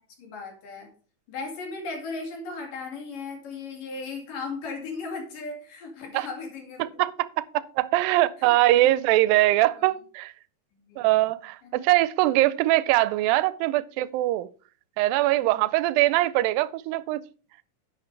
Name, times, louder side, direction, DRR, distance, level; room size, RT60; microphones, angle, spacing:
voice 1, 0.2-0.9 1.3-7.0 8.4-8.9 9.8-9.9 10.7-11.1 11.6-11.9, left 4 dB, 70° left, 3.9 m, -37 dB
voice 2, 6.8-10.3 11.0-14.5 15.0-17.2, right 16 dB, 90° right, 2.3 m, -22 dB
11.0 x 8.3 x 3.3 m
omnidirectional pair, 4.0 m